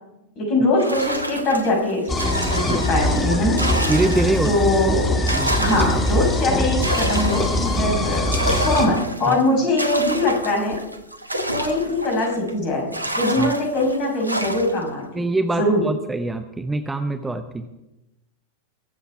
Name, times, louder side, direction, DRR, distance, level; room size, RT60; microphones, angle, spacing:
voice 1, 0.4-2.1 2.5-3.6 4.4-5.1 5.6-10.8 11.5-12.9 13.1-15.0 15.5-15.8, left 2 dB, 40° left, 1 dB, 5.7 m, -22 dB
sound 1, 0.8-4.6 5.0-12.5 12.9-14.9, right 1 dB, 85° right, 1.0 m, -29 dB
sound 2, 2.1-8.9, left 1 dB, 20° left, 2.0 m, -22 dB
voice 2, 3.9-4.5 5.3-5.6 9.2-9.4 13.4-13.5 15.1-17.7, right 2 dB, 10° right, 7 dB, 0.8 m, -24 dB
22.5 x 8.0 x 4.7 m, 0.94 s
figure-of-eight pair, 90°, 0 cm